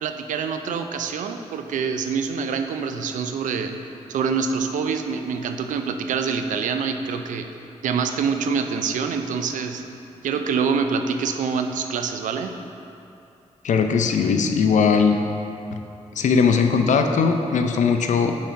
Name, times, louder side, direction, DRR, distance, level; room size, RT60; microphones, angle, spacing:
voice 1, 0.0-3.7 4.1-7.5 7.8-9.8 10.2-12.6, right 5 dB, 85° right, 7 dB, 0.4 m, -25 dB
voice 2, 13.6-15.2 16.2-18.3, left 5 dB, 70° left, 5 dB, 0.5 m, -19 dB
5.8 x 4.2 x 5.1 m, 2.7 s
cardioid pair, 50°, 13 cm